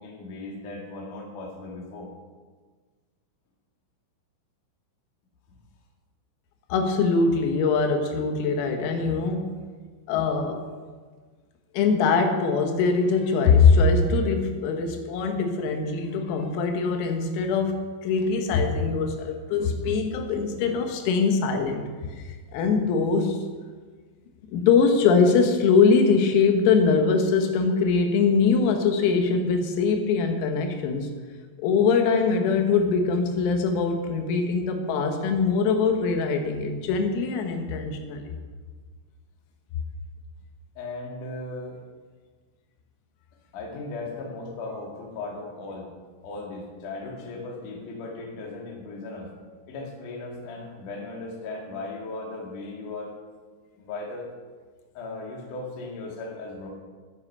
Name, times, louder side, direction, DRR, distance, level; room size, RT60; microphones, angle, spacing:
voice 1, 0.0-2.1 40.8-41.8 43.5-45.9 46.2-49.3 49.7-53.1 53.8-54.3 54.9-56.7, left 3 dB, 50° left, 0 dB, 2.7 m, -37 dB
voice 2, 6.7-9.6 10.1-10.6 11.7-21.9 22.2-22.3 22.5-23.4 24.5-31.1 31.6-38.2, left 5 dB, 85° left, 4 dB, 4.0 m, -22 dB
12.5 x 10.0 x 5.5 m, 1.4 s
omnidirectional pair, 6.0 m